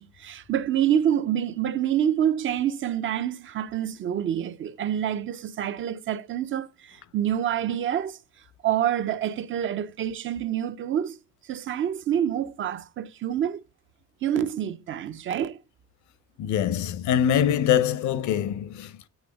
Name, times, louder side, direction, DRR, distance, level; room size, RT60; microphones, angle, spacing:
voice 1, 0.0-8.2 8.6-11.2 11.4-13.6 14.2-15.6, right 10 dB, 45° right, 0.4 m, -27 dB
voice 2, 16.4-19.1, left 9 dB, 75° left, 0.7 m, -24 dB
8.8 x 3.4 x 5.0 m
cardioid pair, 155°, 29 cm